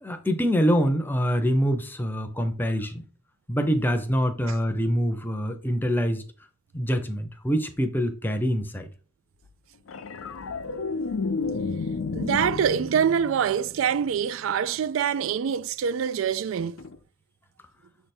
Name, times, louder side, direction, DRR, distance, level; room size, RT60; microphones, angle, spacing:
voice 1, 0.0-3.0 3.5-6.2 6.7-8.9, equal, 10° left, 0.7 m, -25 dB
sound 1, 9.9-14.4 16.8-17.0, left 4 dB, 90° left, 0.5 m, -32 dB
voice 2, 12.1-16.8, right 7 dB, 75° right, 0.3 m, -25 dB
6.6 x 3.4 x 4.4 m
head